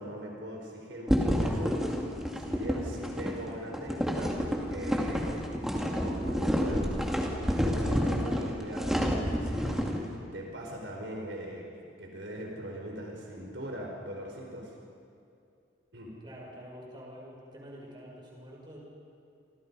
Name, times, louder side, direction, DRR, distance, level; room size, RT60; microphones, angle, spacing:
voice 1, 0.0-1.7 2.4-4.4 4.7-5.4 5.7-11.6 12.0-14.7 15.9-16.1, right 1 dB, 75° right, 0 dB, 4.7 m, -41 dB
sound 1, 1.1-10.0, equal, ahead, 2.4 m, -29 dB
voice 2, 16.2-18.8, equal, 25° right, -3 dB, 6.3 m, -47 dB
29.0 x 25.5 x 5.6 m, 2.5 s
head